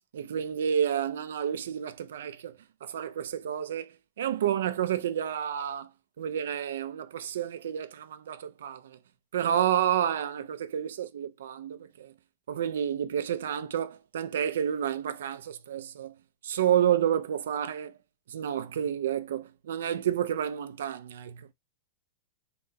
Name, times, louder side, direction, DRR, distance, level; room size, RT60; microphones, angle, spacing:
voice 1, 0.1-5.9 6.2-9.0 9.3-12.1 12.5-16.1 16.4-17.9 18.3-21.5, right 9 dB, 80° right, 0.5 m, -30 dB
3.8 x 2.3 x 3.9 m
supercardioid pair, 160°, 0 cm